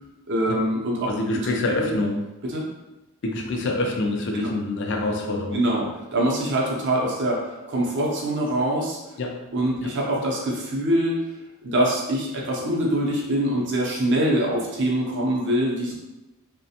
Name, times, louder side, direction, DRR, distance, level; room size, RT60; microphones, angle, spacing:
voice 1, 0.3-1.1 1.3-1.5 1.8-1.9 2.5-2.7 4.3-4.5 5.5-5.9 6.1-9.0 9.5-11.2 11.6-15.9, right 1 dB, 55° right, -3 dB, 0.6 m, -24 dB
voice 2, 1.1-2.2 3.2-5.6 9.2-9.3 9.8-9.9, left 2 dB, 55° left, 1 dB, 0.4 m, -26 dB
2.4 x 2.1 x 2.7 m, 0.99 s
head